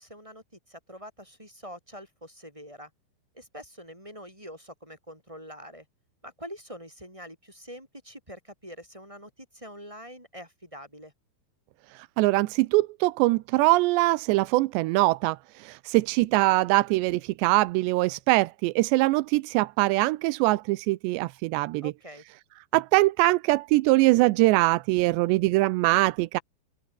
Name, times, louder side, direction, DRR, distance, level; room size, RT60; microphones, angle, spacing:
voice 1, 0.0-2.9 3.3-5.8 6.2-11.1 21.8-22.2, equal, 5° right, 5.8 m, -45 dB
voice 2, 12.2-21.9 22.7-26.4, right 20 dB, 80° right, 2.8 m, -23 dB
omnidirectional pair, 5.2 m